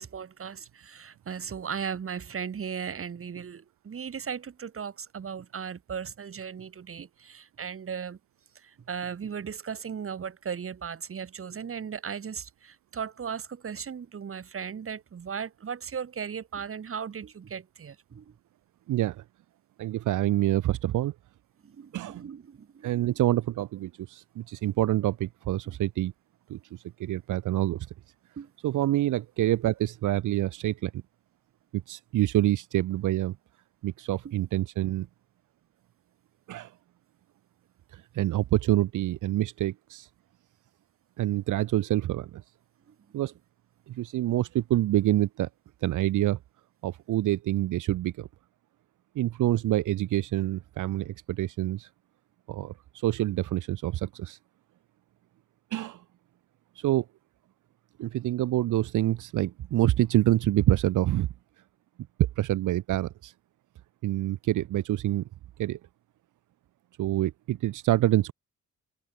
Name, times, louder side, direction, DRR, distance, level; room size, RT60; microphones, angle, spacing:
voice 1, 0.0-8.2 8.6-18.3 21.6-22.9 25.7-25.8 28.4-28.5 34.2-34.3, right 7 dB, 45° right, 5.5 m, -37 dB
voice 2, 18.9-19.2 19.8-21.1 21.9-22.3 22.8-26.1 26.5-27.9 28.6-31.0 31.9-33.4 33.8-35.1 36.5-36.7 37.9-40.1 41.2-42.4 43.1-43.3 43.9-45.5 45.8-46.4 46.8-48.3 49.2-51.9 52.5-54.4 55.7-56.0 56.8-57.1 58.0-61.3 62.4-63.3 64.0-65.2 65.6-65.8 67.0-68.3, right 14 dB, 80° right, 2.3 m, -27 dB
cardioid pair, 90°, 30 cm